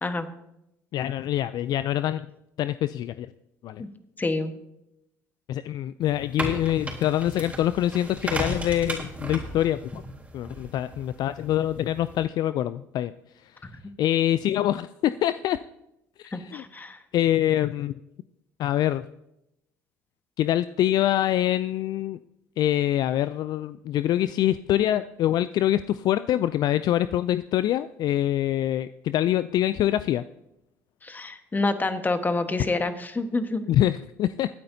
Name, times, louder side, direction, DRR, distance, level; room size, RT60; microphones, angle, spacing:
voice 1, 0.9-2.3 2.6-3.3 3.6-3.8 5.5-10.0 10.3-13.1 13.4-13.6 14.0-15.6 16.2-16.6 17.1-17.9 18.6-19.1 20.4-22.2 22.6-30.2 33.7-34.5, left 12 dB, 55° left, 14 dB, 0.3 m, -25 dB
voice 2, 4.2-4.5 16.3-17.0 31.0-33.7, left 3 dB, 20° left, 9 dB, 1.3 m, -27 dB
sound 1, 6.0-12.2, right 1 dB, 15° right, 3.7 m, -35 dB
23.5 x 8.8 x 2.8 m, 0.85 s
hypercardioid pair, 65°, 8 cm